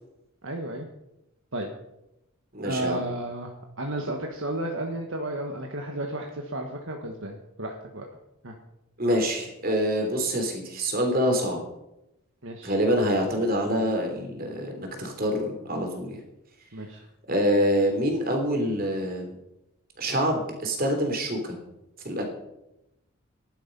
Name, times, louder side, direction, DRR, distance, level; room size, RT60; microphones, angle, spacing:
voice 1, 0.4-0.9 1.5-1.7 2.6-8.0 8.4-8.5 12.4-12.7 16.7-17.0, right 1 dB, 65° right, 2 dB, 1.5 m, -33 dB
voice 2, 2.5-3.0 9.0-11.6 12.6-16.2 17.3-19.3 20.0-21.6 22.0-22.2, equal, 40° right, 4 dB, 3.2 m, -26 dB
14.0 x 11.5 x 5.4 m, 0.89 s
head